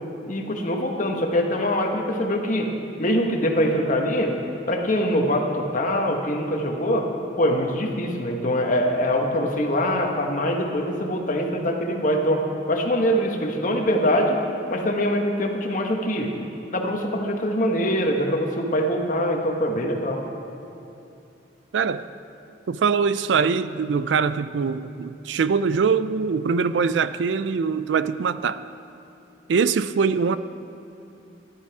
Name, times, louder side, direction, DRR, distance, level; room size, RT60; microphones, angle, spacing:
voice 1, 0.3-2.7 3.0-4.3 4.7-7.1 7.4-14.4 14.7-16.3 16.7-20.2, equal, 45° left, 1.3 m, -23 dB
voice 2, 21.7-22.0 22.7-28.6 29.5-30.4, right 5 dB, 75° right, 0.4 m, -23 dB
14.0 x 11.5 x 4.8 m
head